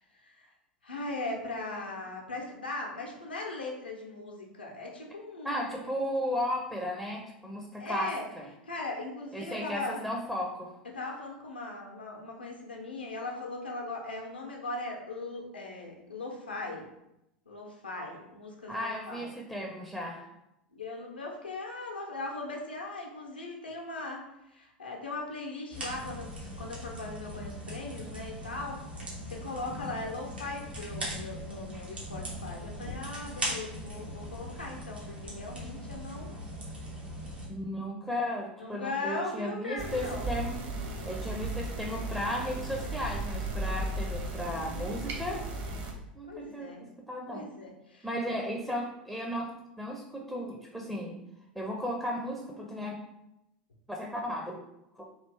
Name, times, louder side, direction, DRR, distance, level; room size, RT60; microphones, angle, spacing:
voice 1, 0.8-5.7 7.8-8.3 8.6-10.0 10.9-16.9 17.5-19.3 20.7-24.2 24.5-28.8 29.3-36.3 38.6-40.3 46.2-46.8 47.3-48.1, left 2 dB, 85° left, 0 dB, 0.7 m, -39 dB
voice 2, 5.4-8.5 9.3-10.8 18.7-20.3 37.5-40.6 41.1-45.4 46.1-47.5 48.0-51.2 51.5-53.0 53.9-54.6, equal, 5° right, 0 dB, 0.5 m, -35 dB
sound 1, 25.7-37.5, equal, 85° right, 1.1 m, -40 dB
sound 2, 39.8-45.9, right 1 dB, 45° right, 0.8 m, -35 dB
3.1 x 2.5 x 3.3 m, 0.88 s
figure-of-eight pair, 85°, 5 cm